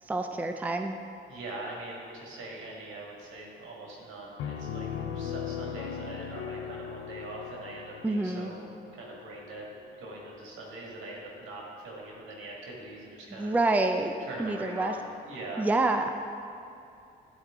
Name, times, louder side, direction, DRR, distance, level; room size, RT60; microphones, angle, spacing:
voice 1, 0.0-1.0 8.0-8.5 13.3-14.1 14.4-14.9 15.6-16.1, right 2 dB, 10° right, 6 dB, 0.4 m, -27 dB
voice 2, 1.3-4.9 5.1-9.7 10.0-13.5 14.2-14.9 15.2-15.7, right 2 dB, 80° right, -3 dB, 1.9 m, -42 dB
Piano, 4.4-9.9, left 8 dB, 85° left, 0.5 m, -38 dB
11.5 x 4.5 x 3.6 m, 2.6 s
cardioid pair, 90°, 20 cm